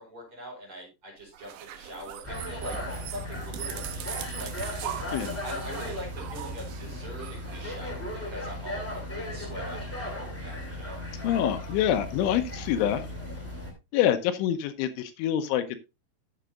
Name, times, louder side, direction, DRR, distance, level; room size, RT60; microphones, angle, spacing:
voice 1, 0.0-2.8 3.1-4.5 5.4-11.0, right 1 dB, 30° right, -2 dB, 5.4 m, -42 dB
sound 1, 1.3-8.3, right 11 dB, 75° right, 2.8 m, -41 dB
sound 2, 2.2-13.7, left 1 dB, 10° left, 0.8 m, -36 dB
voice 2, 5.1-5.4 11.2-13.0 13.9-15.8, left 10 dB, 85° left, 9 dB, 3.2 m, -26 dB
14.5 x 7.3 x 2.5 m, 0.25 s
omnidirectional pair, 5.5 m